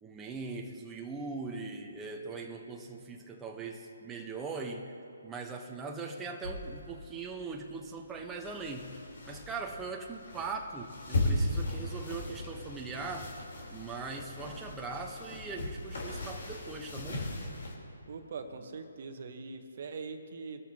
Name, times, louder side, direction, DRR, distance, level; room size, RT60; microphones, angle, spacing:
voice 1, 0.0-4.9 5.2-9.0 9.3-13.3 13.7-17.3, right 4 dB, 10° right, 0 dB, 1.1 m, -40 dB
sound 1, 6.4-17.7, left 1 dB, 65° left, 3.9 m, -37 dB
voice 2, 18.1-20.6, right 4 dB, 55° right, 7 dB, 1.2 m, -42 dB
23.5 x 13.5 x 2.9 m, 2.7 s
figure-of-eight pair, 145°, 0 cm